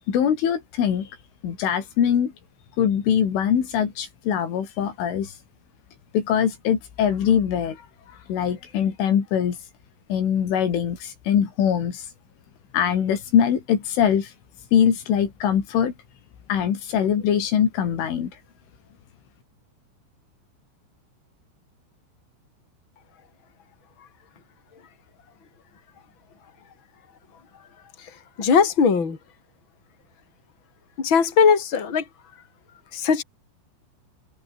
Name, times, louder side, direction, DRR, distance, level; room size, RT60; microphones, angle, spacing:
voice 1, 0.1-1.1 1.4-2.3 2.8-5.3 6.1-7.8 8.3-9.6 10.1-12.0 12.7-14.3 14.7-15.9 16.5-18.3, left 8 dB, 75° left, 5.9 m, -22 dB
voice 2, 28.4-29.2 31.0-32.0 32.9-33.2, left 6 dB, 25° left, 4.1 m, -19 dB
omnidirectional pair, 5.6 m